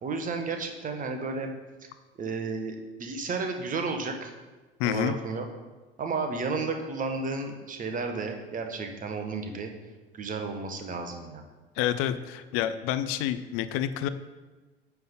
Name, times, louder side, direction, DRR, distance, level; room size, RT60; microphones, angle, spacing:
voice 1, 0.0-1.5 2.2-4.3 4.8-5.5 6.0-9.7 10.1-11.4, right 4 dB, 25° right, 5 dB, 1.1 m, -32 dB
voice 2, 4.8-5.1 11.8-14.1, left 11 dB, 45° left, 11 dB, 0.5 m, -28 dB
9.2 x 3.5 x 5.6 m, 1.2 s
figure-of-eight pair, 70°, 31 cm